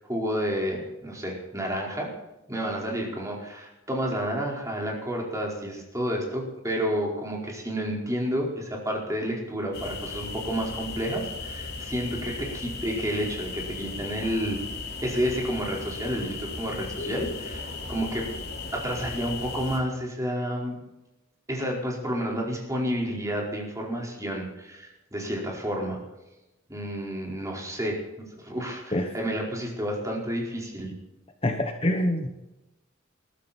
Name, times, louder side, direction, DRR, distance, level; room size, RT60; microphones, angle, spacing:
voice 1, 0.0-2.1 2.5-14.6 15.0-18.3 18.7-20.8 21.5-26.0 26.7-30.9, equal, 15° right, -2 dB, 4.7 m, -30 dB
sound 1, 9.7-19.8, left 3 dB, 55° left, 3.8 m, -36 dB
voice 2, 31.4-32.3, left 1 dB, 30° left, 5 dB, 1.2 m, -25 dB
21.0 x 13.0 x 4.4 m, 0.99 s
head